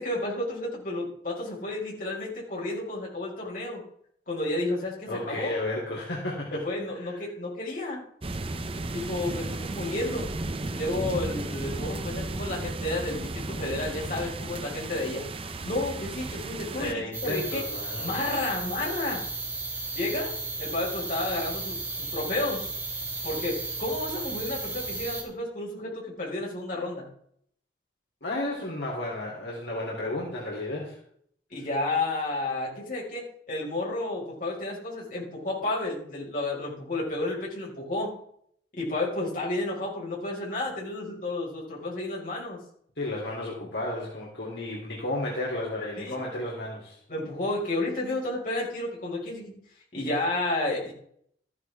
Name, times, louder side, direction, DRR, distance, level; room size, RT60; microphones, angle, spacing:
voice 1, 0.0-3.8 4.3-5.5 6.5-8.0 8.9-10.3 10.7-15.2 15.6-17.6 18.0-19.2 19.9-22.6 23.2-27.1 31.5-38.2 38.7-42.6 46.0-46.2 47.1-49.6 49.9-50.9, left 2 dB, 45° left, -4 dB, 5.6 m, -31 dB
voice 2, 5.1-6.5 7.0-7.2 16.7-18.1 28.2-31.0 43.0-47.0, left 1 dB, 70° left, -4 dB, 3.5 m, -33 dB
sound 1, 8.2-16.9, right 2 dB, 30° right, 0.7 m, -34 dB
sound 2, 17.1-25.2, right 3 dB, 15° right, 3.1 m, -34 dB
14.0 x 11.0 x 3.6 m, 0.65 s
head